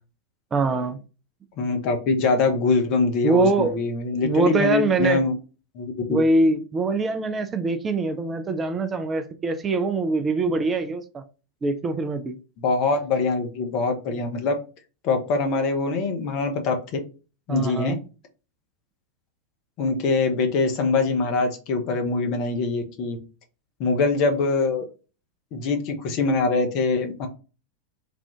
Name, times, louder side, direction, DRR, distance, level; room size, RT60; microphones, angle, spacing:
voice 1, 0.5-1.0 3.2-3.7 4.2-5.2 6.1-11.2 11.6-12.4 17.5-18.0, right 3 dB, 20° right, 8 dB, 0.4 m, -23 dB
voice 2, 1.6-5.3 5.7-6.2 12.6-14.5 15.0-17.0 17.5-18.0 19.8-23.2 23.8-24.8 25.5-27.3, left 4 dB, 40° left, 4 dB, 0.8 m, -23 dB
3.3 x 2.4 x 3.6 m, 0.34 s
figure-of-eight pair, 90°, 0 cm